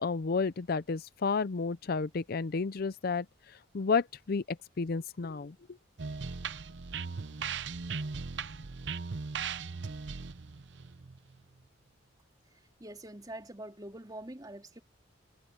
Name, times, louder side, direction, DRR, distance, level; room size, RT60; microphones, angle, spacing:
voice 1, 0.0-3.3 3.7-5.6, left 4 dB, 55° left, 0.5 m, -31 dB
sound 1, 6.0-11.6, right 5 dB, 65° right, 0.7 m, -38 dB
voice 2, 12.8-14.8, right 1 dB, 20° right, 3.5 m, -44 dB
head